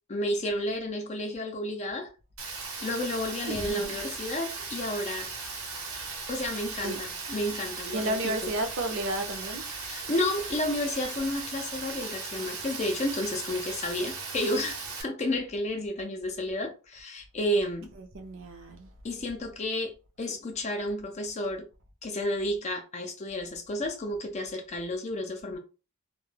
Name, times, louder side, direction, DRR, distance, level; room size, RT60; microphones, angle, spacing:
voice 1, 0.1-2.1 2.8-5.3 6.3-8.3 9.8-17.9 19.0-21.7 22.0-25.6, left 1 dB, 30° left, 0.4 m, -31 dB
Rain, 2.4-15.0, right 4 dB, 80° right, 0.9 m, -38 dB
voice 2, 3.5-4.0 6.8-7.0 7.9-9.7 18.0-18.9, right 1 dB, 60° right, 0.6 m, -32 dB
2.2 x 2.1 x 3.2 m
head